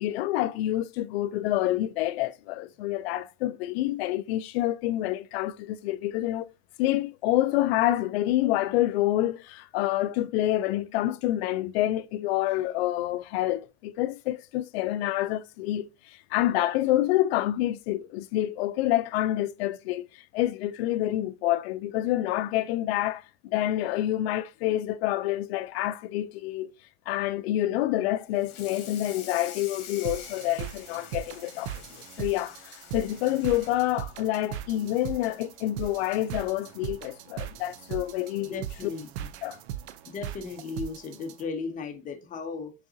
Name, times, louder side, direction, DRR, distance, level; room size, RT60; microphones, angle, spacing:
voice 1, 0.0-6.5 6.8-20.1 20.3-26.7 27.1-31.8 32.2-38.6 39.4-39.6, left 14 dB, 70° left, 0.5 m, -27 dB
Water tap faucet / Sink (filling or washing), 28.3-35.0 35.4-35.6 36.0-36.1 36.5-36.6 37.7-37.8 38.3-38.5, left 8 dB, 50° left, 1.2 m, -46 dB
sound 1, 30.0-41.4, right 11 dB, 80° right, 0.5 m, -39 dB
voice 2, 38.4-39.3 40.1-42.7, left 4 dB, 25° left, 0.7 m, -36 dB
3.9 x 3.6 x 2.6 m
supercardioid pair, 130°, 32 cm